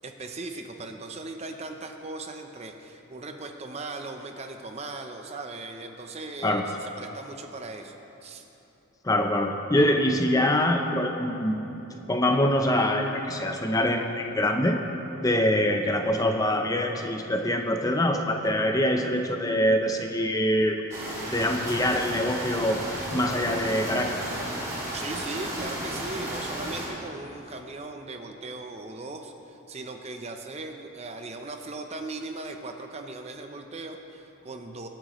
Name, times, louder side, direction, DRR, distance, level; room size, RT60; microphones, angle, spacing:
voice 1, 0.0-8.4 24.9-34.9, right 3 dB, 30° right, 5 dB, 0.7 m, -38 dB
voice 2, 9.0-11.5 12.1-14.8 15.2-20.8 21.3-22.8 23.1-24.3, left 1 dB, 15° left, 4 dB, 0.6 m, -24 dB
sound 1, 20.9-26.9, right 1 dB, 15° right, 2.4 m, -34 dB
22.0 x 8.9 x 3.1 m, 3.0 s
head